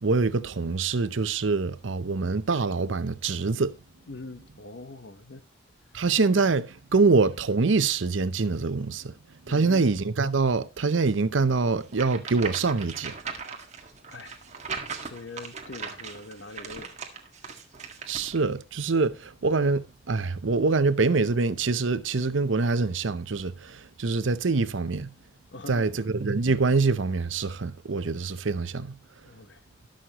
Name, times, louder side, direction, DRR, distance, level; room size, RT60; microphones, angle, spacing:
voice 1, 0.0-3.8 5.9-9.1 9.4-13.1 18.1-25.1 25.7-29.0, right 4 dB, 80° right, 0.7 m, -25 dB
voice 2, 4.1-5.4 5.9-6.0 9.5-9.8 14.1-14.4 15.1-16.9 25.5-25.9 29.2-29.6, left 2 dB, 65° left, 1.1 m, -42 dB
sound 1, 11.9-18.4, right 5 dB, 35° right, 1.7 m, -38 dB
19.0 x 6.4 x 3.0 m
head